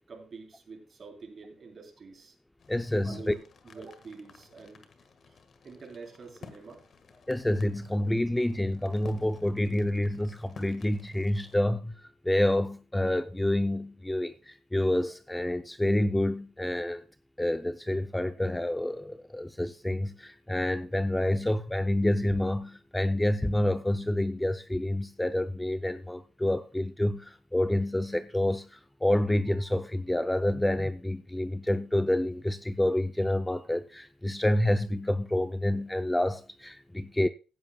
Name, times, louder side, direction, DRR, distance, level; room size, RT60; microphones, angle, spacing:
voice 1, 0.1-2.4 3.0-4.9 5.3-5.4 5.6-6.8, right 4 dB, 45° right, 3.5 m, -46 dB
sound 1, 2.6-11.6, left 6 dB, 50° left, 1.5 m, -54 dB
voice 2, 2.7-3.3 7.3-12.0 12.2-17.0 17.4-37.3, left 1 dB, 10° left, 0.5 m, -28 dB
15.5 x 11.0 x 2.3 m
cardioid pair, 90°, 0 cm